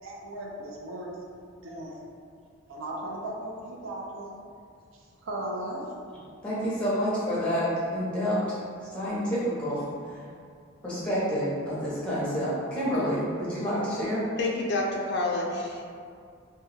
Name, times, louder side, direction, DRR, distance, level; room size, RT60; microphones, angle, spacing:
voice 1, 0.0-1.1 1.6-2.0 2.7-4.3 5.2-5.8, right 1 dB, 80° right, -3 dB, 0.5 m, -36 dB
voice 2, 6.4-8.6 8.9-10.2 10.8-14.3, equal, 5° left, -10 dB, 0.6 m, -28 dB
voice 3, 14.4-15.8, left 2 dB, 55° left, -1 dB, 0.3 m, -28 dB
2.2 x 2.1 x 3.1 m, 2.2 s
head